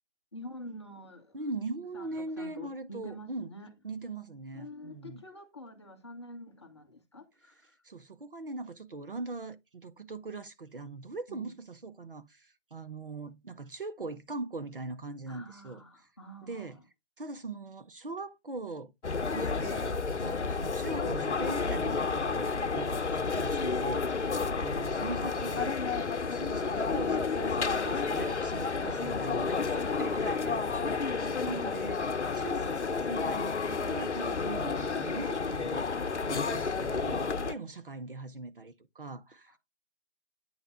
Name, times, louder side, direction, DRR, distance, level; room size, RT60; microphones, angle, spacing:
voice 1, 0.3-1.4 1.9-3.7 4.5-7.8 11.3-11.5 15.3-16.8 28.8-30.2 31.3-31.8 39.5-39.6, left 1 dB, 25° left, 0.9 m, -47 dB
voice 2, 1.3-3.5 3.8-5.2 7.8-15.8 16.4-16.8 17.2-18.9 19.3-25.8 26.3-32.0 32.3-35.9 36.2-39.6, right 3 dB, 50° right, 0.7 m, -41 dB
sound 1, 19.0-37.5, left 4 dB, 75° left, 0.7 m, -31 dB
8.8 x 3.3 x 3.6 m
figure-of-eight pair, 155°, 35 cm